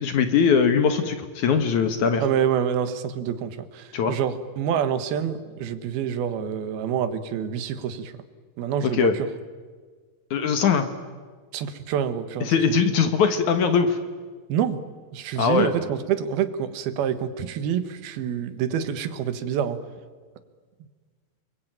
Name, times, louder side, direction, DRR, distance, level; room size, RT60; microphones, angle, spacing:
voice 1, 0.0-2.2 3.9-4.1 8.8-9.1 10.3-10.9 12.4-14.0 15.4-15.9, left 6 dB, 60° left, 8 dB, 2.5 m, -21 dB
voice 2, 2.2-8.2 8.6-9.3 11.5-12.8 14.5-14.8 15.1-19.8, right 8 dB, 80° right, 11 dB, 3.3 m, -27 dB
30.0 x 22.0 x 9.2 m, 1.5 s
omnidirectional pair, 4.4 m